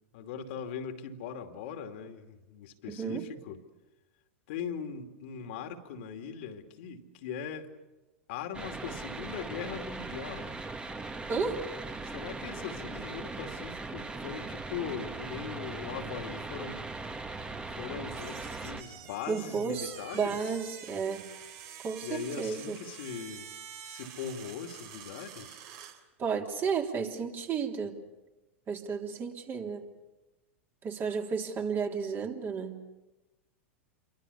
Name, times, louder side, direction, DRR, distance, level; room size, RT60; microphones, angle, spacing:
voice 1, 0.1-3.6 4.5-7.7 8.3-10.5 12.0-16.8 17.7-20.5 22.0-23.5 23.8-25.6, left 7 dB, 55° left, 2.6 m, -40 dB
voice 2, 2.9-3.2 11.3-11.6 19.3-21.2 21.8-22.8 26.2-28.0 28.7-29.8 30.8-32.8, right 5 dB, 30° right, 3.4 m, -32 dB
sound 1, 8.5-18.8, right 3 dB, 15° right, 1.9 m, -39 dB
sound 2, 18.0-26.0, right 9 dB, 45° right, 3.2 m, -47 dB
28.5 x 24.0 x 7.0 m
figure-of-eight pair, 95°, 7 cm